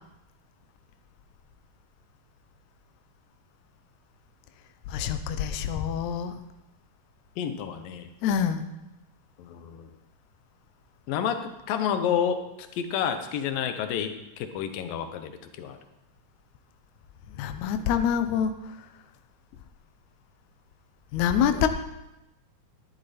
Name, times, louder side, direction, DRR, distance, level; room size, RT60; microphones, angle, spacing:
voice 1, 4.9-6.4 8.2-8.6 17.4-18.5 21.1-21.7, left 8 dB, 75° left, 8 dB, 1.9 m, -25 dB
voice 2, 7.4-8.1 9.4-9.9 11.1-11.4 11.7-12.4 12.8-15.8, left 8 dB, 90° left, 8 dB, 2.6 m, -29 dB
12.5 x 11.0 x 4.3 m, 0.95 s
omnidirectional pair, 3.9 m